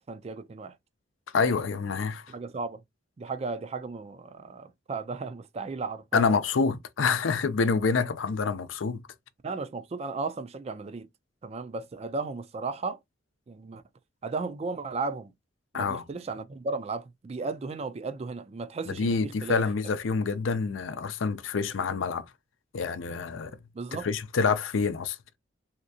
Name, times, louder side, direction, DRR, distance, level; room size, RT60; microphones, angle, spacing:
voice 1, 0.1-0.8 2.3-2.8 3.2-6.3 9.4-11.1 11.4-13.0 13.5-13.8 14.2-15.3 15.7-19.6 23.7-24.1, right 4 dB, 35° right, 0.3 m, -35 dB
voice 2, 1.3-2.3 6.1-9.0 15.7-16.0 18.9-22.3 22.7-23.6 24.0-25.4, left 5 dB, 85° left, 0.5 m, -27 dB
3.3 x 2.8 x 2.7 m
head